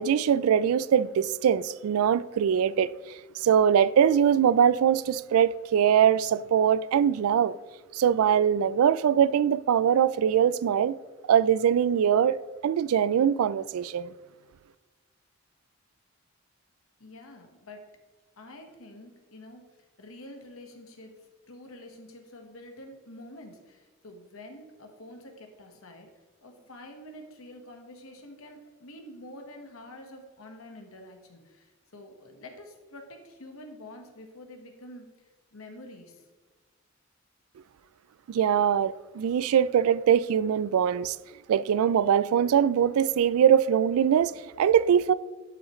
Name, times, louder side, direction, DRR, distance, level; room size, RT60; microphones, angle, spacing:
voice 1, 0.0-2.9 3.4-7.6 7.9-11.0 11.3-12.4 12.6-14.1 38.3-41.2 41.5-45.1, right 8 dB, 75° right, 0.3 m, -22 dB
voice 2, 17.0-17.8 18.4-19.6 20.0-26.1 26.4-36.3, left 1 dB, 70° left, 1.3 m, -47 dB
11.5 x 6.3 x 3.1 m
head